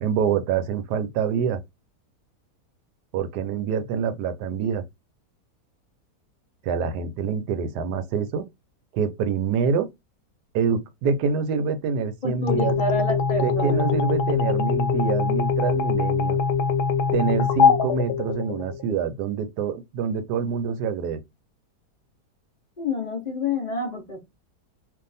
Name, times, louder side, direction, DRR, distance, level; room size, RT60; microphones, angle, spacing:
voice 1, 0.0-1.6 3.1-4.8 6.6-8.5 8.9-9.9 10.5-12.8 13.4-16.4 17.1-21.2, right 6 dB, 80° right, 1.2 m, -26 dB
voice 2, 12.2-13.8 22.8-24.2, left 3 dB, 45° left, 0.5 m, -28 dB
sound 1, 12.5-19.0, left 5 dB, 75° left, 1.0 m, -23 dB
2.6 x 2.4 x 3.9 m
omnidirectional pair, 1.8 m